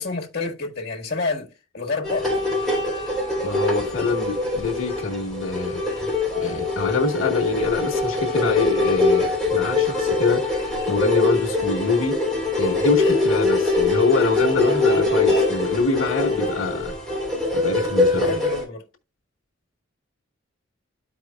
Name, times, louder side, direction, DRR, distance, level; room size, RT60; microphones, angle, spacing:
voice 1, 0.0-2.5 13.0-13.2 18.1-18.8, left 3 dB, 50° left, 1.5 m, -29 dB
sound 1, 2.0-18.6, left 3 dB, ahead, 3.1 m, -23 dB
voice 2, 3.4-5.8 6.3-10.6 10.9-12.2 12.6-17.0 17.5-18.3, left 3 dB, 90° left, 1.1 m, -24 dB
13.0 x 4.7 x 2.2 m
head